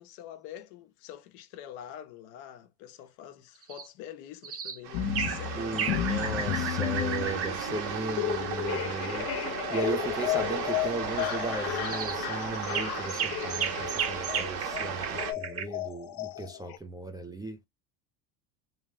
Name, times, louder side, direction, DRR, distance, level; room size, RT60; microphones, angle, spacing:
voice 1, 0.0-6.3 7.0-7.6, left 10 dB, 70° left, 1.1 m, -45 dB
sound 1, 3.6-3.9 4.4-4.8 5.1-5.4 5.8-7.6 11.1-11.3 11.8-12.2 12.6-15.6, right 7 dB, 30° right, 0.8 m, -34 dB
sound 2, 4.8-15.3, right 7 dB, 85° right, 1.4 m, -36 dB
sound 3, 4.9-16.8, left 12 dB, 50° left, 0.7 m, -33 dB
voice 2, 5.6-9.3 9.7-17.6, right 2 dB, 10° right, 0.3 m, -36 dB
3.3 x 3.1 x 3.0 m
supercardioid pair, 105°, 48 cm